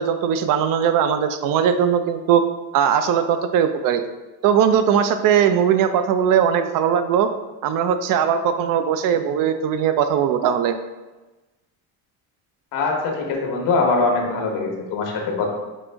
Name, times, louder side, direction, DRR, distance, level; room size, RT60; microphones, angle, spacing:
voice 1, 0.0-2.4 2.7-4.0 4.4-7.3 7.6-10.8, right 8 dB, 55° right, 9 dB, 0.5 m, -19 dB
voice 2, 12.7-15.5, left 3 dB, 80° left, 1 dB, 1.0 m, -22 dB
5.4 x 2.5 x 3.4 m, 1.1 s
cardioid pair, 130°, 40 cm